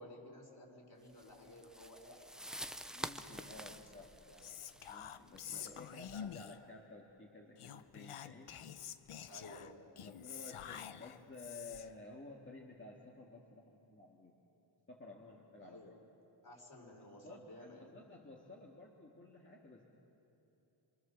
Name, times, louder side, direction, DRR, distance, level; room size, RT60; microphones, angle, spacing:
voice 1, 0.0-2.3 3.2-4.4 5.5-5.8 9.3-9.8 15.6-15.9 16.4-17.9, left 1 dB, 45° left, 0 dB, 4.9 m, -55 dB
sound 1, 1.1-6.0, equal, ahead, 0.6 m, -48 dB
voice 2, 2.9-4.1 4.9-8.6 10.0-14.4 14.9-15.9 17.2-19.8, left 2 dB, 25° left, -3 dB, 2.0 m, -53 dB
Whispering, 4.4-6.7 7.6-12.0, left 9 dB, 90° left, 0.9 m, -48 dB
26.5 x 24.5 x 7.1 m, 2.9 s
wide cardioid pair, 150°, 50 cm